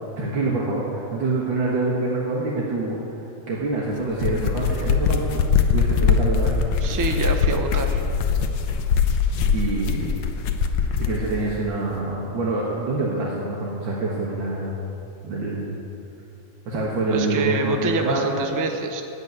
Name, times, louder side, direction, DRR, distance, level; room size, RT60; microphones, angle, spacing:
voice 1, 0.2-3.0 3.5-5.4 5.7-6.6 9.5-10.2 11.0-14.8 15.2-15.8 16.7-18.5, right 2 dB, 85° right, -5 dB, 2.2 m, -26 dB
sound 1, 4.0-11.2, left 6 dB, 75° left, 1.5 m, -22 dB
voice 2, 6.8-8.0 17.1-19.0, right 3 dB, 30° right, 4 dB, 0.3 m, -26 dB
10.5 x 8.4 x 9.3 m, 2.8 s
omnidirectional pair, 2.0 m